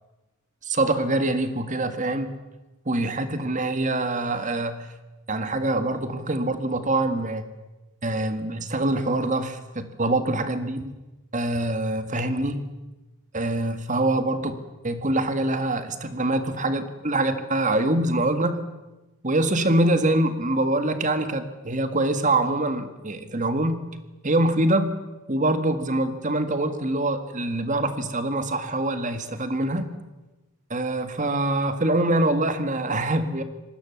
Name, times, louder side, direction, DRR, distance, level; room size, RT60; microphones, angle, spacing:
voice 1, 0.7-2.3 2.8-4.9 5.3-7.4 8.0-11.0 11.3-12.7 13.3-14.5 14.8-18.6 19.2-23.7 24.2-24.9 25.3-29.9 30.7-33.4, right 2 dB, 35° right, 9 dB, 1.7 m, -24 dB
26.5 x 19.5 x 7.2 m, 1.1 s
head